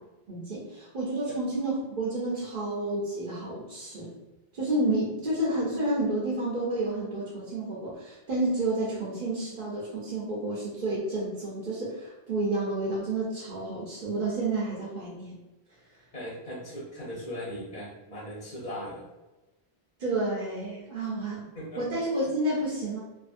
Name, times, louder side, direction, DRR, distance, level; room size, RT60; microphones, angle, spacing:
voice 1, 0.3-4.1 4.5-15.4 20.0-21.5 21.8-23.0, right 2 dB, 50° right, -7 dB, 0.7 m, -30 dB
voice 2, 16.1-19.0 21.5-21.8, equal, 45° left, -7 dB, 1.0 m, -38 dB
2.6 x 2.6 x 2.5 m, 1.1 s
omnidirectional pair, 1.1 m